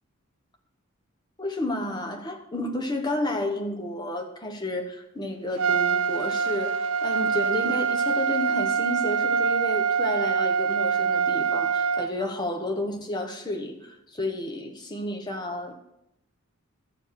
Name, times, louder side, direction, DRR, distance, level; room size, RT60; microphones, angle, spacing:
voice 1, 1.4-15.8, left 1 dB, 20° left, 2 dB, 1.1 m, -31 dB
Trumpet, 5.6-12.1, right 6 dB, 65° right, 0.4 m, -24 dB
13.0 x 7.1 x 4.6 m, 0.84 s
head